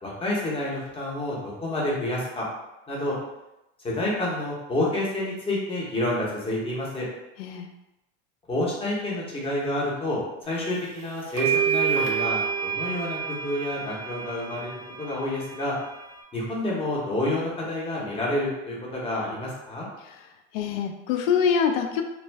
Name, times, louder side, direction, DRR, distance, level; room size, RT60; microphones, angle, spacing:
voice 1, 0.0-2.5 2.9-3.2 3.8-7.1 8.5-14.7 15.0-15.8 16.3-19.9, left 1 dB, 15° left, -5 dB, 0.7 m, -29 dB
sound 1, 10.8-10.9 11.4-16.2, right 7 dB, 90° right, 0.7 m, -28 dB
voice 2, 20.5-22.0, left 7 dB, 70° left, 5 dB, 0.5 m, -24 dB
2.4 x 2.2 x 3.2 m, 0.94 s
supercardioid pair, 130°, 40 cm